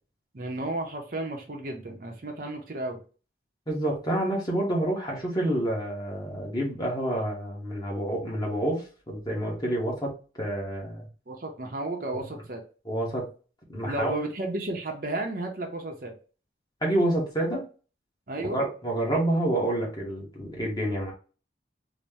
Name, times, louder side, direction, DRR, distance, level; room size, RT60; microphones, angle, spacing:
voice 1, 0.3-3.0 11.3-12.6 13.8-16.1 18.3-18.6, right 2 dB, 50° right, 2 dB, 0.7 m, -33 dB
voice 2, 3.7-10.1 10.4-11.1 12.1-12.2 12.9-13.3 13.7-14.1 16.8-17.6 18.4-21.1, right 1 dB, 20° left, -2 dB, 1.1 m, -28 dB
4.0 x 2.1 x 3.5 m, 0.36 s
head